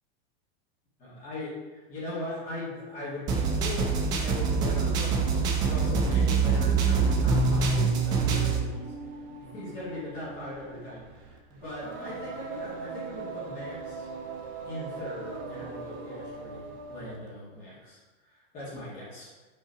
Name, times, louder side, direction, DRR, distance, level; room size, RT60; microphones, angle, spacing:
voice 1, 1.0-5.2 5.6-9.1 9.4-14.1 14.6-19.3, left 1 dB, 30° left, -8 dB, 2.2 m, -40 dB
sound 1, 3.3-8.6, right 4 dB, 15° right, 0.4 m, -25 dB
Singing, 4.1-17.3, right 4 dB, 30° right, 0.9 m, -41 dB
5.6 x 3.8 x 5.9 m, 1.3 s
supercardioid pair, 175°, 29 cm